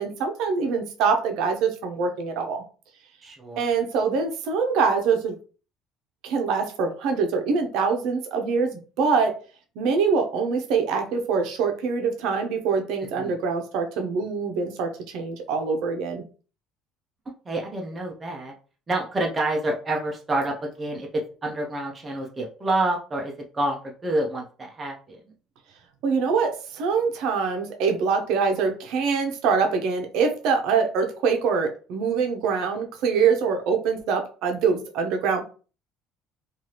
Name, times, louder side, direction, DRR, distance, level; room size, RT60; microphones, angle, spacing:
voice 1, 0.0-2.6 3.6-5.3 6.2-9.3 9.8-16.2 26.0-35.4, right 5 dB, 60° right, 4 dB, 0.6 m, -24 dB
voice 2, 3.2-3.7 13.2-13.3 17.5-18.5 18.9-25.2, right 1 dB, 15° right, 0 dB, 0.4 m, -28 dB
3.1 x 2.4 x 2.8 m, 0.38 s
cardioid pair, 180°, 0 cm